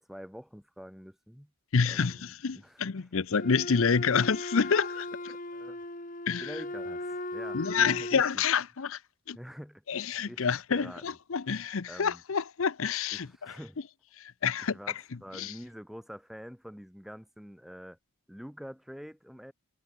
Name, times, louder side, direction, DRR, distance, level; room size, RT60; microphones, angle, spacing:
voice 1, 0.0-1.5 1.8-3.1 5.3-5.8 6.4-8.4 9.3-11.0 11.9-12.2 13.1-13.8 14.7-14.9 15.2-18.0 18.3-19.5, equal, ahead, 3.4 m, -46 dB
voice 2, 1.7-5.3 6.3-6.5 7.5-9.0 9.3-9.4 9.9-13.5 14.2-14.8 15.3-15.5, left 6 dB, 65° left, 0.6 m, -28 dB
Wind instrument woodwind instrument, 3.4-8.3, left 1 dB, 35° left, 4.6 m, -38 dB
head